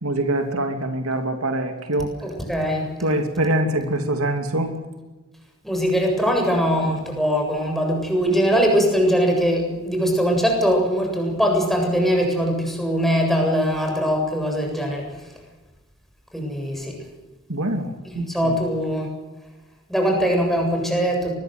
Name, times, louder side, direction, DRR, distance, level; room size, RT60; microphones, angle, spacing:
voice 1, 0.0-2.1 3.0-4.7 17.5-18.2, right 1 dB, 65° right, 5 dB, 2.8 m, -24 dB
voice 2, 2.2-2.9 5.6-15.3 16.3-17.0 18.0-19.1 19.9-21.3, equal, ahead, 1 dB, 7.6 m, -21 dB
25.0 x 21.0 x 7.9 m, 1.1 s
head